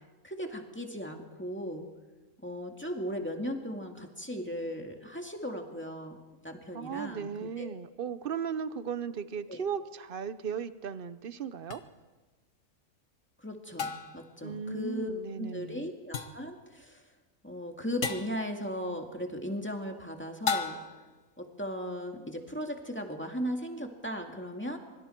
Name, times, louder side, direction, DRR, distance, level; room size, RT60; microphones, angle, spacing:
voice 1, 0.2-1.9 2.4-6.2 6.4-7.3 7.6-7.7 9.5-9.6 13.4-17.0 17.4-20.8 21.4-24.8, equal, 10° left, 2 dB, 2.1 m, -37 dB
voice 2, 6.7-11.8 14.4-15.9, right 7 dB, 45° right, 13 dB, 0.8 m, -36 dB
sound 1, 11.7-11.8 13.8-14.3 16.1-16.5 18.0-18.4 20.5-21.1, left 6 dB, 65° left, 1.6 m, -33 dB
25.0 x 24.5 x 4.5 m, 1.3 s
omnidirectional pair, 1.5 m